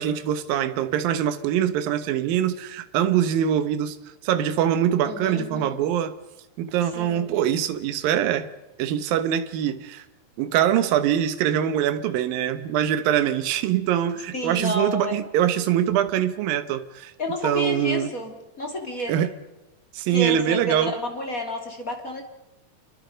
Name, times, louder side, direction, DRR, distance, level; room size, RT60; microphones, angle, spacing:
voice 1, 0.0-4.0 4.2-6.2 6.6-8.5 8.8-10.0 10.4-17.1 17.4-18.1 19.1-19.3 19.9-20.9, right 10 dB, 75° right, 2.8 m, -23 dB
voice 2, 5.0-5.8 7.0-7.3 14.3-15.2 17.2-19.1 20.1-22.2, left 1 dB, 25° left, 2.7 m, -30 dB
28.5 x 23.0 x 5.2 m
omnidirectional pair, 4.2 m